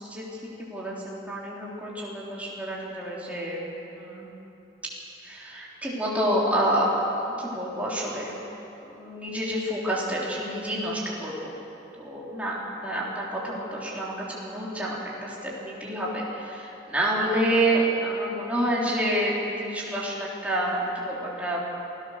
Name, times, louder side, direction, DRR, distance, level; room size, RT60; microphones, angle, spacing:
voice 1, 0.0-3.6 3.9-4.3 5.2-6.9 7.4-8.3 8.8-11.5 12.0-21.6, right 1 dB, 10° right, -6 dB, 3.8 m, -28 dB
27.0 x 16.5 x 6.7 m, 3.0 s
head